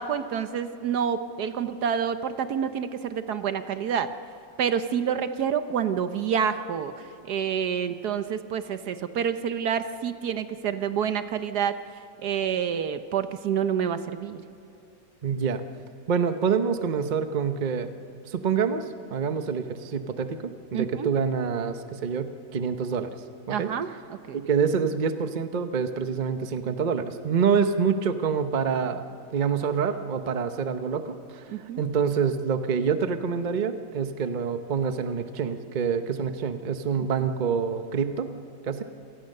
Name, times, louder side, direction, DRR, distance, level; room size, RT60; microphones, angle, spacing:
voice 1, 0.0-4.1 4.6-6.9 7.2-11.7 12.2-14.4 20.7-21.1 23.5-24.4 31.5-31.8, right 8 dB, 70° right, 10 dB, 1.3 m, -28 dB
voice 2, 15.2-15.6 16.1-17.9 18.3-23.1 23.5-23.7 24.3-29.1 29.3-31.4 31.8-38.3 38.6-38.8, right 6 dB, 35° right, 8 dB, 0.8 m, -26 dB
27.0 x 19.5 x 6.6 m, 2.9 s
omnidirectional pair, 1.9 m